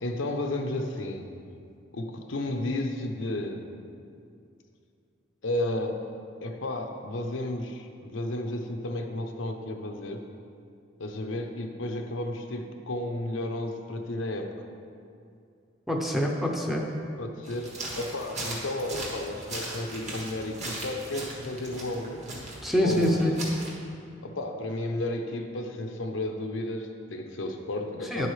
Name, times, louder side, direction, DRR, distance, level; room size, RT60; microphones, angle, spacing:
voice 1, 0.0-1.3 1.9-3.7 5.4-6.0 6.4-10.3 11.0-14.5 17.2-22.2 22.8-23.4 24.2-28.3, left 1 dB, 85° left, 4 dB, 0.7 m, -32 dB
voice 2, 15.9-16.9 22.6-23.3 28.1-28.3, equal, ahead, -1 dB, 0.6 m, -25 dB
sound 1, 17.4-23.7, right 1 dB, 35° right, 1.4 m, -38 dB
9.8 x 7.8 x 3.2 m, 2.5 s
head